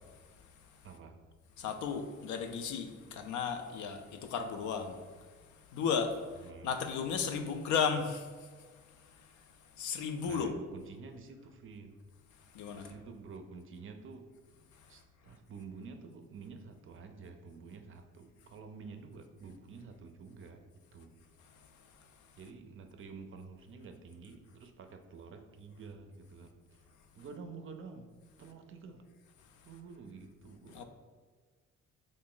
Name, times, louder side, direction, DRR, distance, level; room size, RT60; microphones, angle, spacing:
voice 1, 0.8-1.2 6.4-6.7 10.3-12.0 12.7-14.3 14.9-20.6 20.9-21.1 22.4-26.8 27.1-28.1 28.4-29.0 29.6-30.8, right 4 dB, 45° right, 7 dB, 0.4 m, -49 dB
voice 2, 1.6-5.0 5.7-6.1 6.6-8.3 9.8-10.5 12.5-12.9 30.7-30.8, left 6 dB, 75° left, 6 dB, 0.5 m, -34 dB
3.0 x 2.6 x 3.6 m, 1.5 s
cardioid pair, 90°, 30 cm